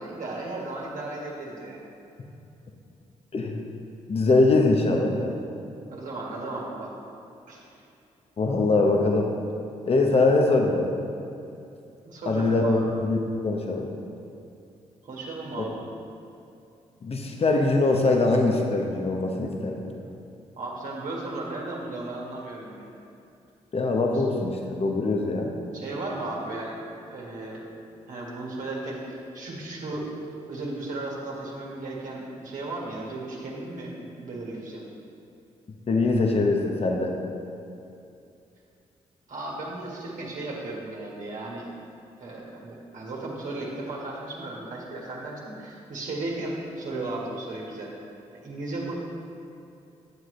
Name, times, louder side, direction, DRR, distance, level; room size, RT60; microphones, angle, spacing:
voice 1, 0.0-1.8 5.9-6.9 7.5-7.7 12.1-12.8 15.0-15.8 20.6-22.9 24.1-24.2 25.7-26.8 27.1-27.7 28.1-30.1 30.5-34.8 39.3-41.7 42.2-47.9 48.4-48.9, right 2 dB, 65° right, -4 dB, 1.8 m, -35 dB
voice 2, 4.1-5.4 8.4-9.3 9.9-10.9 12.3-13.2 13.4-13.9 17.0-19.8 23.7-25.5 35.9-37.1, left 3 dB, 45° left, 1 dB, 1.1 m, -22 dB
9.2 x 7.6 x 3.3 m, 2.6 s
supercardioid pair, 45°, 14 cm